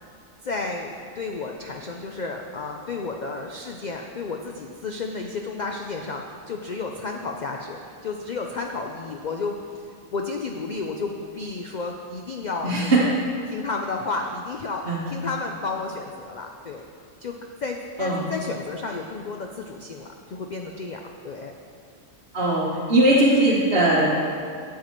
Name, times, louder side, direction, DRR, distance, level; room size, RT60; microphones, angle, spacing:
voice 1, 0.4-13.1 13.5-16.9 17.2-21.5, left 3 dB, 80° left, 2 dB, 0.4 m, -32 dB
voice 2, 12.6-13.1 14.8-15.0 18.0-18.3 22.3-24.1, right 1 dB, 50° right, -7 dB, 1.2 m, -20 dB
11.5 x 7.3 x 3.1 m, 2.2 s
omnidirectional pair, 1.4 m